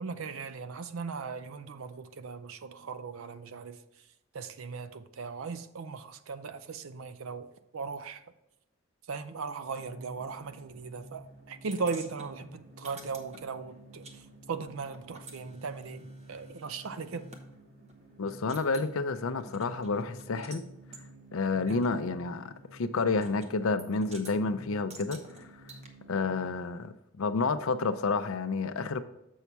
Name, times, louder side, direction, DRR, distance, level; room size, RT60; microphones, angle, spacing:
voice 1, 0.0-3.8 4.3-8.2 9.1-14.2 14.5-17.3 21.7-21.9, right 5 dB, 75° right, 0.5 m, -38 dB
sound 1, 9.8-26.5, right 1 dB, 50° right, 1.6 m, -51 dB
sound 2, 11.7-14.2 14.4-17.4 17.9-18.0 18.3-18.9 19.4-20.6 20.9-21.1 21.8-21.9 23.2-23.5 23.8-24.4 24.9-25.9, right 3 dB, 30° right, 0.8 m, -50 dB
voice 2, 18.2-20.6 21.3-22.5 22.8-25.2 26.1-29.0, left 4 dB, 75° left, 0.5 m, -30 dB
7.0 x 5.6 x 4.6 m
head